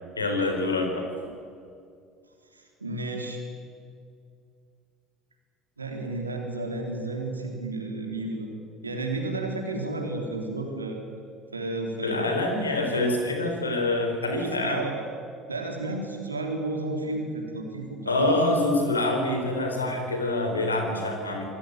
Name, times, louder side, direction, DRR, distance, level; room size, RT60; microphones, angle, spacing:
voice 1, 0.2-1.1 12.0-14.8 18.1-21.4, left 2 dB, 85° left, 4 dB, 4.1 m, -26 dB
voice 2, 2.5-3.4 5.8-8.5 8.8-11.0 11.5-12.4 14.4-15.0 15.5-18.3, right 2 dB, 85° right, 2 dB, 3.6 m, -32 dB
26.0 x 19.5 x 9.2 m, 2.3 s
figure-of-eight pair, 60°, 0 cm